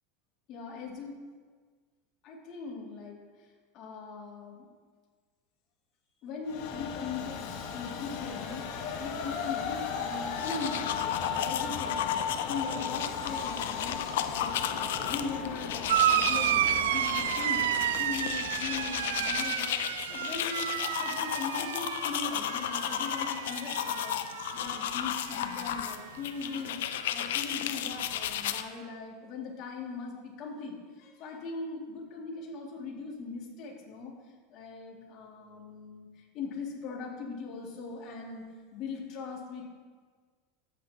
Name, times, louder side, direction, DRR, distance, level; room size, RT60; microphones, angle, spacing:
voice 1, 0.5-1.1 2.2-3.5 3.7-4.7 6.2-24.2 24.5-34.1 34.5-38.4 38.7-39.6, left 5 dB, 40° left, -2 dB, 2.3 m, -40 dB
Train, 6.5-19.9, left 6 dB, 60° left, 1.3 m, -36 dB
sound 1, 10.2-28.6, left 10 dB, 80° left, 0.5 m, -34 dB
sound 2, 15.9-24.9 25.2-25.9 27.0-27.1, right 11 dB, 90° right, 0.4 m, -31 dB
14.0 x 8.1 x 2.9 m, 1.5 s
supercardioid pair, 145°, 0 cm